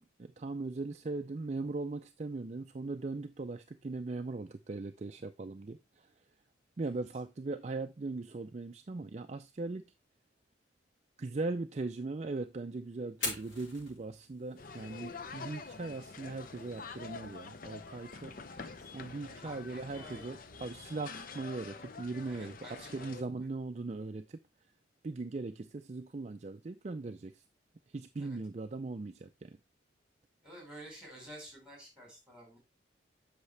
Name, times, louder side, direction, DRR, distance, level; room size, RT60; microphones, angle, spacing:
voice 1, 0.0-6.1 6.8-9.8 11.2-18.4 18.9-24.4 25.0-27.4 27.9-29.6, right 3 dB, 35° right, 0.4 m, -39 dB
Fire, 13.1-21.1, left 2 dB, 85° left, 4.1 m, -47 dB
sound 1, 14.6-23.2, left 4 dB, 45° left, 0.6 m, -47 dB
voice 2, 18.5-18.9 19.4-20.3 22.3-23.5 28.2-28.4 30.4-32.6, right 1 dB, 5° right, 4.7 m, -51 dB
8.1 x 5.9 x 3.3 m
head